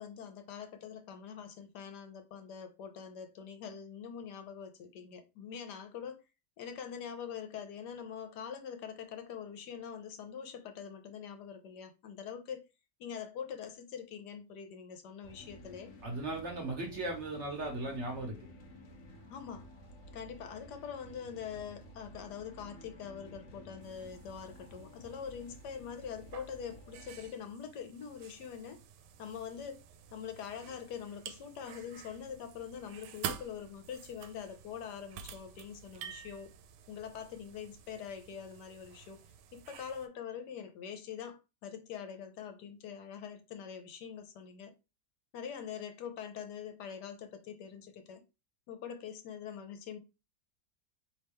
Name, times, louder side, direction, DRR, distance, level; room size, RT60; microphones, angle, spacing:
voice 1, 0.0-6.2 6.6-12.6 13.0-15.9 19.3-19.7 20.1-28.8 29.2-29.8 30.1-36.5 36.9-39.2 39.5-44.7 45.3-48.2 48.7-50.0, left 7 dB, 75° left, 1.3 m, -44 dB
sound 1, 15.2-27.3, equal, 50° left, 1.2 m, -53 dB
voice 2, 16.0-18.3, right 2 dB, 50° right, 1.1 m, -37 dB
sound 2, 23.8-40.1, right 8 dB, 85° right, 1.2 m, -49 dB
4.4 x 3.1 x 3.5 m
omnidirectional pair, 1.8 m